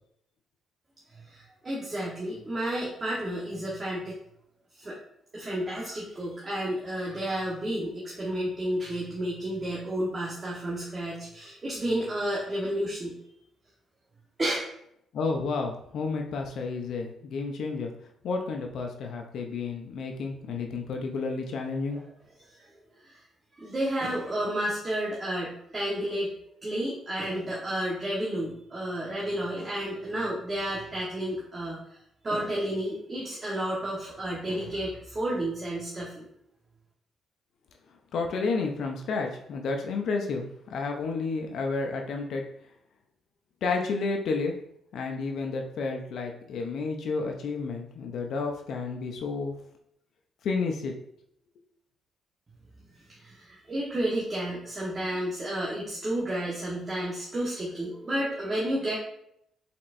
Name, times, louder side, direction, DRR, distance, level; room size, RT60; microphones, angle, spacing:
voice 1, 1.2-4.1 4.8-5.0 5.3-13.2 14.4-14.6 22.5-22.7 23.0-23.2 23.5-26.3 26.6-31.8 32.2-36.3 53.1-59.0, right 1 dB, 30° right, -6 dB, 1.2 m, -31 dB
voice 2, 15.1-17.9 18.2-22.0 38.1-42.4 43.6-44.5 44.9-49.6 50.4-50.9, left 4 dB, 70° left, 3 dB, 0.6 m, -31 dB
4.3 x 4.1 x 2.6 m, 0.73 s
cardioid pair, 90°, 0 cm